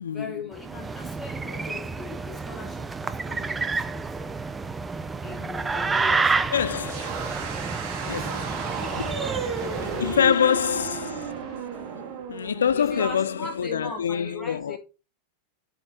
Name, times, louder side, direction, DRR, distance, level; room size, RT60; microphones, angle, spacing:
voice 1, 0.1-4.2 5.2-6.5 6.8-7.1 8.0-8.4 8.6-10.6 12.7-14.8, left 3 dB, 10° left, 2.3 m, -40 dB
sound 1, 0.5-10.3, right 4 dB, 15° right, 0.4 m, -29 dB
voice 2, 6.5-7.3 8.1-8.4 9.0-9.2 10.0-11.3 12.3-14.8, left 8 dB, 65° left, 0.3 m, -25 dB
sound 2, 6.8-13.6, right 5 dB, 40° right, 1.7 m, -34 dB
7.9 x 4.0 x 3.7 m
figure-of-eight pair, 90°, 0 cm